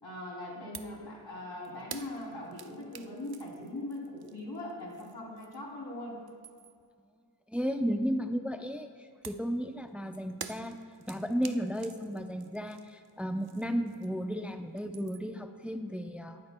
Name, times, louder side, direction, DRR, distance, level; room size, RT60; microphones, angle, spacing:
voice 1, 0.0-6.2, left 1 dB, 85° left, -3 dB, 3.2 m, -41 dB
sound 1, 0.7-1.0 1.3-5.8 6.1-6.9 9.2-14.3 14.6-15.4, right 6 dB, 60° right, 0.6 m, -49 dB
voice 2, 7.5-8.9 9.2-10.8 11.1-16.4, equal, 5° right, 6 dB, 0.6 m, -34 dB
18.0 x 12.0 x 2.3 m, 2.1 s
wide cardioid pair, 40°, 41 cm